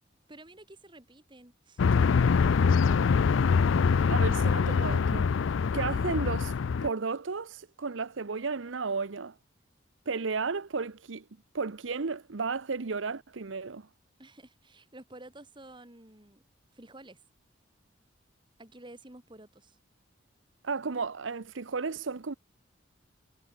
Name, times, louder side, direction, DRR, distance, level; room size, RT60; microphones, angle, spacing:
voice 1, 0.3-2.3 14.2-16.4 16.7-17.2 18.6-19.8, right 1 dB, 25° right, 2.6 m, -51 dB
sound 1, 1.8-6.9, left 5 dB, 85° left, 0.4 m, -24 dB
voice 2, 3.9-5.3 5.7-6.5 6.8-9.3 10.1-11.2 11.5-13.9 20.6-22.3, right 4 dB, 85° right, 0.8 m, -33 dB
head